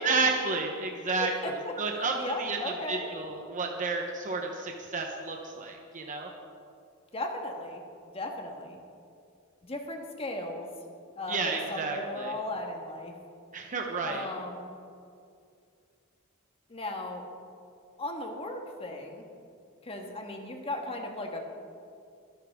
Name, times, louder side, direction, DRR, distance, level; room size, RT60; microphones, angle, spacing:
voice 1, 0.0-6.3 11.3-12.3 13.5-14.3, right 3 dB, 40° right, 1 dB, 1.1 m, -31 dB
voice 2, 1.1-1.7 2.1-3.1 7.1-7.8 8.1-8.8 9.6-10.7 11.1-13.1 14.0-14.7 16.7-17.2 18.0-19.2 19.8-21.4, left 1 dB, 30° left, 2 dB, 1.7 m, -36 dB
23.5 x 10.0 x 3.7 m, 2.4 s
head